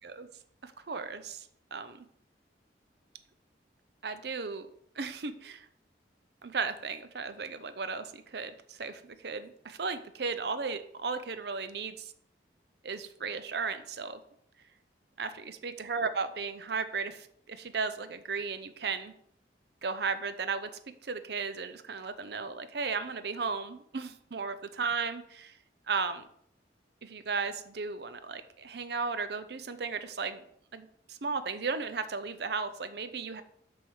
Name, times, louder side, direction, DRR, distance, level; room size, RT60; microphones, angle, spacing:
voice 1, 0.6-2.1 4.0-4.7 5.0-5.7 6.4-12.1 12.8-14.2 15.2-19.1 19.8-20.7 21.0-25.5 25.9-26.3 27.0-30.4 30.7-33.4, right 4 dB, 65° right, 11 dB, 0.6 m, -35 dB
7.6 x 3.6 x 6.3 m, 0.67 s
head